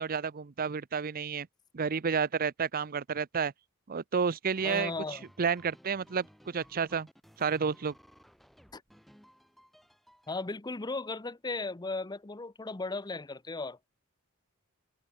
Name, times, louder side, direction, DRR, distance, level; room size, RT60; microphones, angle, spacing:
voice 1, 0.0-1.5 1.7-3.5 3.9-4.9 5.4-7.1 7.4-7.9, right 6 dB, 40° right, 0.6 m, -30 dB
sound 1, 4.5-10.4, equal, ahead, 2.0 m, -59 dB
voice 2, 4.6-5.2 8.7-8.8 10.3-13.8, left 3 dB, 20° left, 0.7 m, -36 dB
head